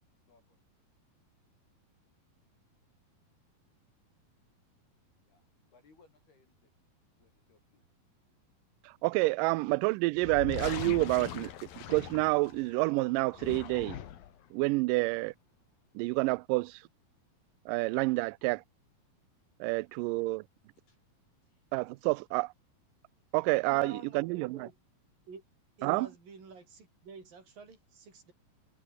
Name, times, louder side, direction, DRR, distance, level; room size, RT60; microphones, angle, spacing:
voice 1, 0.2-0.6 5.3-6.7 7.2-7.9 19.9-20.4 20.9-21.0 21.4-21.6, left 4 dB, 90° left, 9.7 m, -67 dB
voice 2, 9.0-11.5 11.9-14.0 14.5-15.3 16.0-16.8 17.7-18.6 19.6-20.4 21.7-22.5 23.3-24.7 25.8-26.1, right 23 dB, 85° right, 1.9 m, -28 dB
sound 1, 10.2-12.8 13.2-14.4, left 10 dB, 70° left, 3.6 m, -41 dB
voice 3, 23.7-24.8 25.3-25.4 25.8-28.3, right 5 dB, 65° right, 8.5 m, -48 dB
omnidirectional pair, 4.4 m